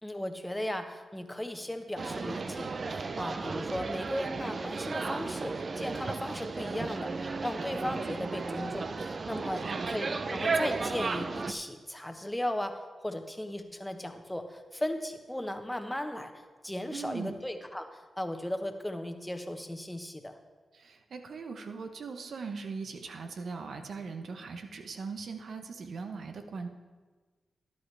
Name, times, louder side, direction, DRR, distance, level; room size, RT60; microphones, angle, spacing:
voice 1, 0.0-16.3 16.6-20.3, left 1 dB, 10° left, 6 dB, 1.2 m, -36 dB
sound 1, 2.0-11.5, right 4 dB, 50° right, 0.6 m, -34 dB
voice 2, 9.6-9.9 16.9-17.3 20.7-26.7, right 4 dB, 70° right, 6 dB, 1.0 m, -40 dB
12.5 x 9.9 x 3.4 m, 1.4 s
cardioid pair, 55°, 0 cm